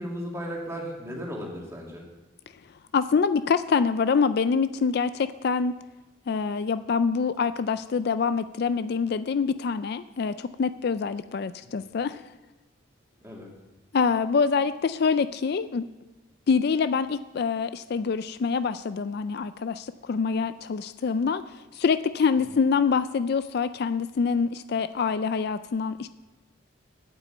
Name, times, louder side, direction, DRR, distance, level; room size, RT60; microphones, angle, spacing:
voice 1, 0.0-2.0 11.8-11.9 13.2-13.5 22.4-22.5, equal, 15° right, -2 dB, 2.3 m, -36 dB
voice 2, 2.9-5.8 6.3-12.2 13.9-15.9 16.5-21.4 21.7-26.1, left 5 dB, 50° left, 13 dB, 0.3 m, -25 dB
9.0 x 8.2 x 8.9 m, 1.1 s
head